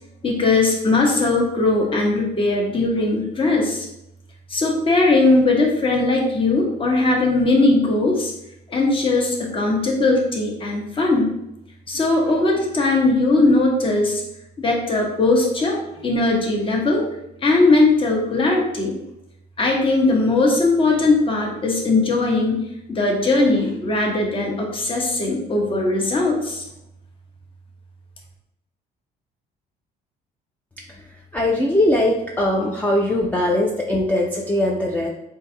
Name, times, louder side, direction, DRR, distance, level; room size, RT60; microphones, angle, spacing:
voice 1, 0.2-3.9 4.5-8.3 8.7-11.3 11.9-14.2 14.6-17.0 17.4-19.0 19.6-26.6, left 2 dB, 30° left, -1 dB, 1.0 m, -19 dB
voice 2, 31.3-35.1, left 1 dB, 10° left, -1 dB, 0.4 m, -20 dB
3.8 x 2.7 x 3.9 m, 0.83 s
cardioid pair, 110°, 17 cm